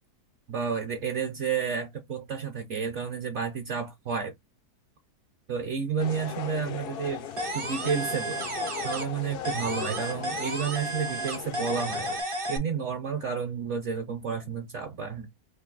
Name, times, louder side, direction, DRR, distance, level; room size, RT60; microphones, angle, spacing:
voice 1, 0.5-4.3 5.5-7.3 7.5-8.4 8.8-15.3, right 6 dB, 55° right, 0.9 m, -31 dB
sound 1, 6.0-12.2, left 9 dB, 90° left, 0.5 m, -38 dB
sound 2, 7.4-9.2 9.4-12.6, right 2 dB, 40° right, 0.4 m, -33 dB
3.3 x 2.4 x 3.8 m
omnidirectional pair, 1.6 m